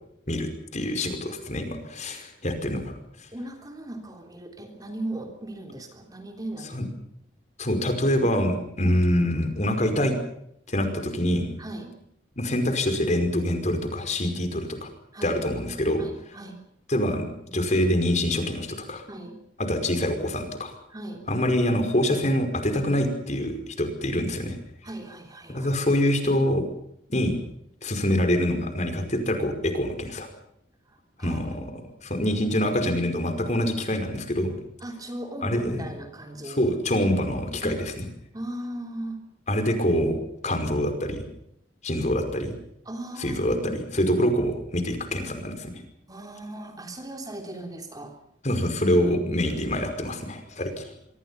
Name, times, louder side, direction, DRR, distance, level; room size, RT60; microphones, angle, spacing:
voice 1, 0.3-2.9 6.7-6.9 7.6-10.2 10.7-11.5 12.4-14.9 15.2-16.0 16.9-19.0 19.6-20.7 21.3-24.6 25.5-26.6 27.1-27.4 27.8-30.3 31.2-31.5 32.0-34.5 35.4-35.9 36.5-37.8 39.5-40.2 40.4-41.2 41.8-42.6 43.2-45.8 48.4-50.9, left 1 dB, 40° left, 7 dB, 5.2 m, -25 dB
voice 2, 3.3-6.9 11.6-11.9 15.1-15.4 16.0-16.6 19.1-19.4 20.9-21.2 24.8-25.7 30.9-31.4 34.8-36.7 37.6-37.8 38.3-39.2 42.9-43.8 46.1-48.2, right 1 dB, 20° right, 4 dB, 3.5 m, -37 dB
25.5 x 24.5 x 5.7 m, 0.73 s
head